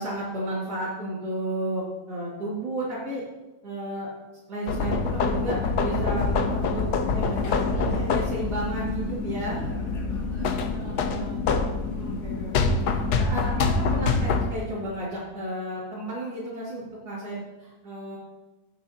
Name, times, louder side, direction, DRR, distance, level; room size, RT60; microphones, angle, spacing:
voice 1, 0.0-3.2 3.6-4.1 4.5-6.8 7.1-9.6 10.7-11.5 11.9-18.2, right 1 dB, 90° right, -9 dB, 2.9 m, -33 dB
sound 1, 4.7-14.5, left 4 dB, 80° left, 1.3 m, -26 dB
voice 2, 9.5-11.2, left 1 dB, 45° left, -4 dB, 3.1 m, -43 dB
15.5 x 7.1 x 2.9 m, 1.2 s
omnidirectional pair, 1.7 m